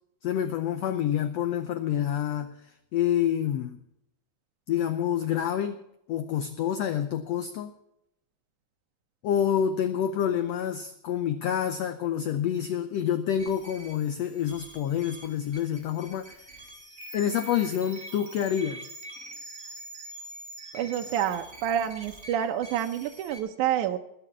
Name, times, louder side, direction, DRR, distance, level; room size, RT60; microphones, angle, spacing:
voice 1, 0.2-2.6 2.9-3.8 4.7-5.8 6.1-7.7 9.2-16.4 17.1-18.9, left 9 dB, 90° left, 10 dB, 1.4 m, -27 dB
sound 1, 13.4-23.4, right 1 dB, 5° right, 4.5 m, -44 dB
voice 2, 20.7-24.0, right 10 dB, 75° right, 5 dB, 2.0 m, -28 dB
20.5 x 6.8 x 7.3 m, 0.81 s
omnidirectional pair, 3.9 m